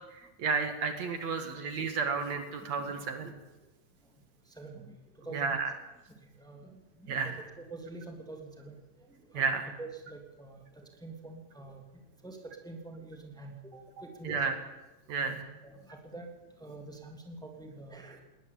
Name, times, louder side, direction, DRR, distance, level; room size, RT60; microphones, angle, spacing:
voice 1, 0.4-3.3 5.3-5.7 7.1-7.4 9.3-9.7 14.2-14.6 15.1-15.4, right 5 dB, 65° right, 7 dB, 3.0 m, -32 dB
voice 2, 4.5-5.6 6.1-11.8 12.2-14.4 15.2-16.3 16.6-18.2, right 3 dB, ahead, 2 dB, 2.7 m, -47 dB
20.0 x 19.5 x 8.7 m, 1.1 s
omnidirectional pair, 3.5 m